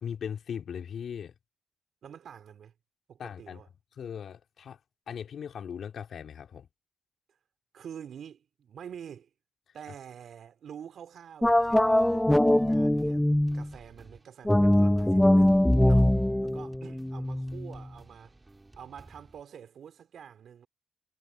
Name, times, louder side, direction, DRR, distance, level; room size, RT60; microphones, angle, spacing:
voice 1, 0.0-1.3 3.2-3.6 3.9-4.8 5.1-6.7, left 8 dB, 65° left, 3.0 m, -38 dB
voice 2, 2.0-2.7 3.1-3.7 7.7-9.3 9.7-13.2 13.5-18.4 18.8-20.7, right 8 dB, 65° right, 3.3 m, -47 dB
sound 1, 11.4-13.7 14.4-17.8, left 1 dB, 10° left, 0.5 m, -22 dB
sound 2, 11.5-19.4, right 2 dB, 20° right, 4.6 m, -55 dB
supercardioid pair, 50°, 0 cm